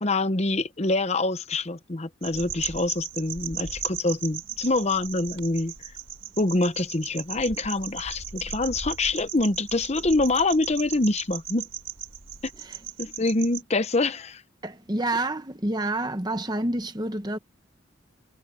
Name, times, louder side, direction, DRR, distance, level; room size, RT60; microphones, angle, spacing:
voice 1, 0.0-5.7 6.4-11.7 12.4-12.5 13.0-14.4, left 2 dB, 35° left, 0.9 m, -25 dB
sound 1, 2.2-13.6, right 9 dB, 85° right, 5.1 m, -37 dB
voice 2, 14.6-17.4, right 2 dB, 20° right, 1.3 m, -28 dB
head